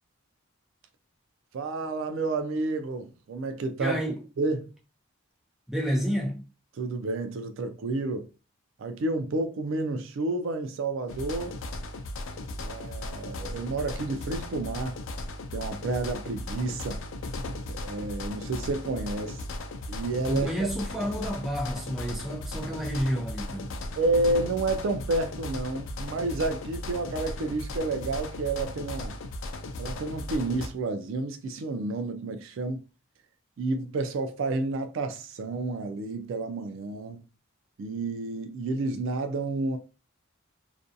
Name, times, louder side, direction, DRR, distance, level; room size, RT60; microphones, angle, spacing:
voice 1, 1.5-4.0 4.4-4.7 6.8-8.3 8.8-11.6 12.6-15.0 15.5-17.0 17.7-19.4 19.9-20.7 24.0-29.2 29.8-32.8 33.6-37.2 37.8-39.8, right 2 dB, 65° right, 0.3 m, -30 dB
voice 2, 3.8-4.2 5.7-6.4 20.3-23.8, equal, ahead, 0.5 m, -30 dB
sound 1, 11.1-30.7, left 2 dB, 65° left, 0.3 m, -37 dB
2.5 x 2.2 x 2.6 m
head